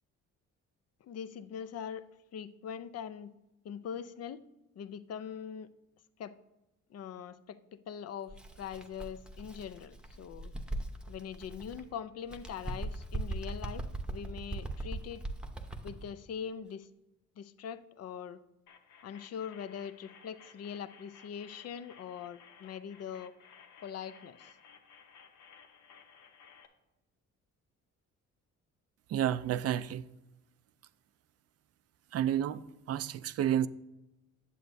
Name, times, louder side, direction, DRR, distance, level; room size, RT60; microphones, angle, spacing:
voice 1, 1.0-3.3 3.6-4.4 4.8-5.7 6.2-6.4 6.9-10.5 11.1-15.2 15.8-16.9 17.4-18.4 19.0-23.3 23.8-24.6, left 8 dB, 55° left, 0.6 m, -42 dB
Bird, 8.3-11.9 12.2-16.1, right 2 dB, 5° right, 0.8 m, -40 dB
sound 1, 18.7-26.7, left 6 dB, 75° left, 0.9 m, -57 dB
voice 2, 29.1-30.0 32.1-33.7, right 11 dB, 55° right, 0.4 m, -30 dB
10.0 x 7.6 x 2.6 m
cardioid pair, 90°, 30 cm